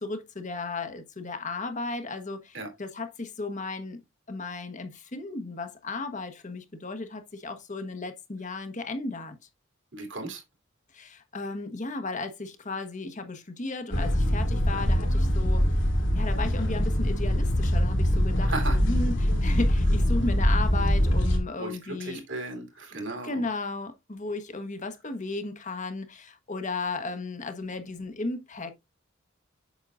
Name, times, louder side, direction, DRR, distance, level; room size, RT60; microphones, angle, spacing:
voice 1, 0.0-4.0 4.3-9.4 10.9-15.7 16.1-22.3 23.2-28.7, left 3 dB, 40° left, 1.2 m, -35 dB
voice 2, 9.9-10.4 18.4-18.8 21.6-23.5, right 2 dB, 65° right, 2.9 m, -35 dB
sound 1, 13.9-21.4, equal, 65° left, 2.4 m, -23 dB
8.2 x 6.2 x 2.5 m
head